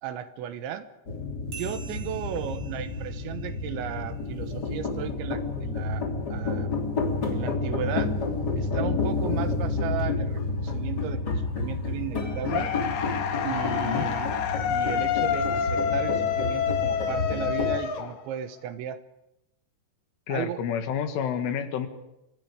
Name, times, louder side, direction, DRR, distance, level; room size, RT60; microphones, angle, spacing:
voice 1, 0.0-0.9 1.5-6.7 7.3-8.1 8.5-12.7 13.4-14.3 14.7-19.0 20.3-20.6, right 10 dB, 75° right, 10 dB, 3.3 m, -35 dB
sound 1, 1.1-17.8, left 3 dB, 30° left, 2.4 m, -30 dB
sound 2, 1.5-4.6, right 5 dB, 20° right, 8.0 m, -47 dB
sound 3, 12.5-18.6, left 8 dB, 60° left, 2.6 m, -28 dB
voice 2, 20.3-21.9, left 8 dB, 80° left, 7 dB, 4.2 m, -29 dB
30.0 x 24.5 x 5.0 m, 0.88 s
omnidirectional pair, 5.6 m